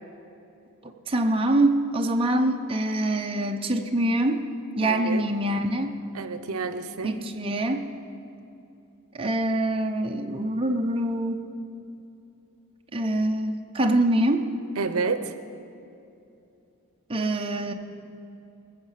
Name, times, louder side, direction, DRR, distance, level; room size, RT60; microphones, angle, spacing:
voice 1, 0.8-4.4 4.8-5.9 7.0-7.8 9.1-11.5 12.9-14.5 17.1-17.7, right 1 dB, 25° right, 3 dB, 0.7 m, -25 dB
voice 2, 4.8-5.3 6.1-7.2 14.8-15.3, right 4 dB, 80° right, 11 dB, 0.7 m, -29 dB
19.5 x 7.3 x 6.5 m, 2.7 s
head